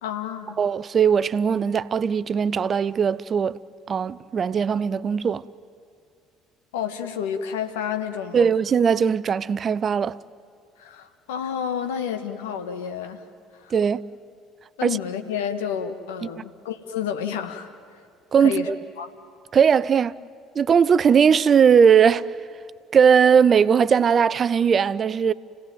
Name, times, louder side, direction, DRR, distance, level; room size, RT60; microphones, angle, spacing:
voice 1, 0.0-0.6 6.7-8.5 10.8-13.2 13.5-13.7 14.8-17.7 18.4-18.7 19.0-19.1, left 8 dB, 75° left, 1.6 m, -30 dB
voice 2, 0.6-3.6 3.9-5.4 8.3-10.2 13.7-14.0 14.8-15.0 18.3-18.8 19.5-20.1 20.5-22.3 22.9-25.3, right 7 dB, 40° right, 0.6 m, -19 dB
30.0 x 17.0 x 9.2 m
hypercardioid pair, 60°, 0 cm